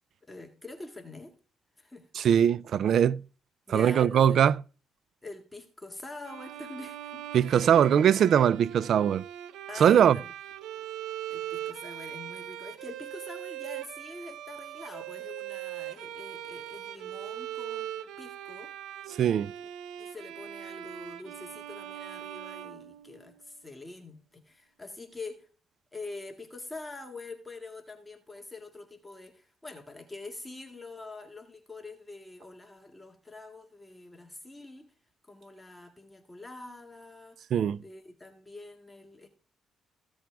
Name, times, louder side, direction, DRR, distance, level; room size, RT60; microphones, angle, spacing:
voice 1, 0.2-1.4 1.8-2.1 3.7-4.5 5.2-8.0 9.7-10.3 11.3-18.7 20.0-25.5 25.9-34.9 35.3-37.5 37.8-39.3, left 2 dB, 15° left, 2.0 m, -45 dB
voice 2, 2.1-3.2 3.7-4.5 7.3-9.2 9.8-10.2 19.2-19.5 37.5-37.8, right 9 dB, 65° right, 0.4 m, -21 dB
Bowed string instrument, 6.2-23.5, right 12 dB, 85° right, 0.7 m, -41 dB
15.5 x 7.7 x 3.5 m
cardioid pair, 90°, 0 cm